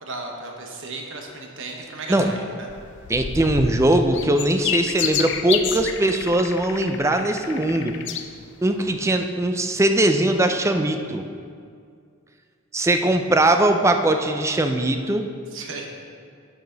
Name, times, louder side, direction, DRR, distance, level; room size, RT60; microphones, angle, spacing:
voice 1, 0.0-2.7 15.5-15.9, right 3 dB, 60° right, 1 dB, 1.1 m, -35 dB
sound 1, 2.7-8.3 8.9-9.0, left 7 dB, 55° left, 0.5 m, -29 dB
voice 2, 3.1-7.9 8.6-11.3 12.7-15.3, right 1 dB, 15° right, 6 dB, 0.4 m, -20 dB
12.0 x 4.9 x 3.9 m, 2.2 s
head